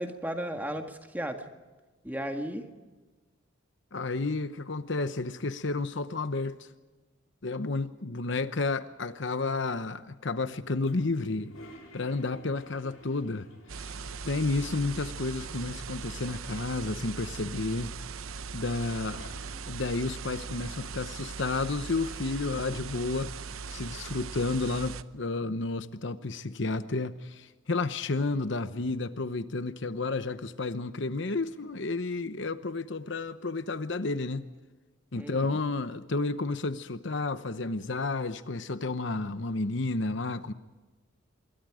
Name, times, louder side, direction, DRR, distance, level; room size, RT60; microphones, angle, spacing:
voice 1, 0.0-1.4 2.0-2.7 35.1-35.6, equal, 10° right, 1.9 m, -35 dB
voice 2, 3.9-6.7 7.4-11.5 11.9-13.5 13.8-14.0 14.2-17.9 18.5-19.3 19.7-23.3 23.7-34.5 35.1-40.5, left 3 dB, 60° left, 0.9 m, -31 dB
Toilet flush, 10.8-15.2 15.5-15.6 15.8-16.6 17.1-19.9, left 1 dB, 90° left, 7.8 m, -53 dB
sound 1, 13.7-25.0, right 5 dB, 85° right, 0.8 m, -40 dB
26.5 x 23.0 x 5.0 m
head